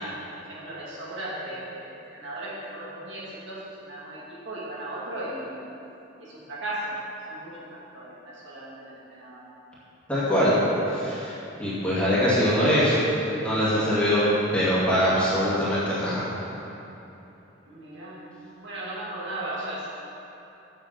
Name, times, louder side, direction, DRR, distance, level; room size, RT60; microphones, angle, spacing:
voice 1, 0.0-5.7 6.2-7.0 7.3-9.5 17.6-18.3 18.6-19.9, right 1 dB, 60° right, -8 dB, 2.5 m, -36 dB
voice 2, 10.1-10.5 10.9-11.3 11.6-13.0 13.3-14.2 14.5-16.2, equal, 5° left, -10 dB, 2.5 m, -23 dB
8.3 x 8.0 x 5.9 m, 2.9 s
head